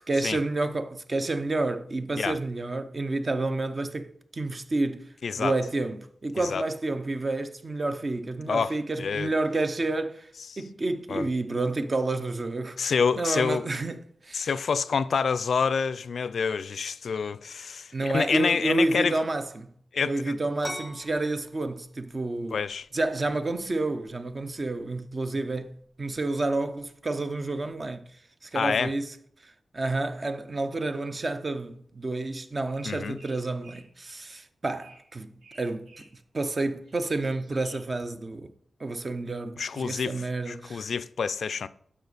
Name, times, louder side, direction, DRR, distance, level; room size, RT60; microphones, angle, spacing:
voice 1, 0.1-5.1 5.4-10.3 10.6-14.5 17.9-19.7 20.0-22.6 22.9-28.1 28.4-29.1 29.4-36.1 36.3-38.5 38.8-40.9, right 2 dB, 30° right, 0.6 m, -30 dB
voice 2, 5.2-5.5 6.4-6.6 8.5-9.3 11.1-11.3 12.8-13.7 14.3-19.2 19.9-20.4 22.5-22.9 28.5-28.9 32.8-33.2 39.6-40.2 40.5-41.7, left 6 dB, 70° left, 0.4 m, -27 dB
sound 1, 20.6-28.0, left 1 dB, 10° left, 0.8 m, -46 dB
sound 2, 32.7-33.9 34.8-35.1 35.4-36.2 36.6-38.0, right 2 dB, 90° right, 2.9 m, -55 dB
12.0 x 5.0 x 4.0 m
wide cardioid pair, 160°, 0 cm